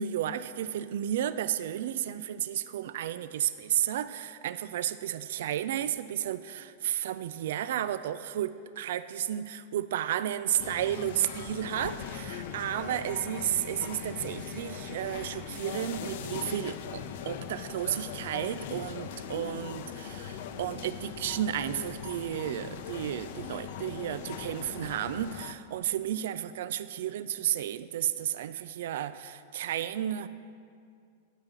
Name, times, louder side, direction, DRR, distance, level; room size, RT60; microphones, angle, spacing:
voice 1, 0.0-30.3, right 11 dB, 65° right, 13 dB, 0.3 m, -32 dB
sound 1, 10.6-25.5, left 8 dB, 60° left, 0.6 m, -40 dB
sound 2, 11.8-16.3, right 3 dB, 20° right, 0.8 m, -55 dB
9.1 x 5.3 x 7.2 m, 2.3 s
hypercardioid pair, 100°, 0 cm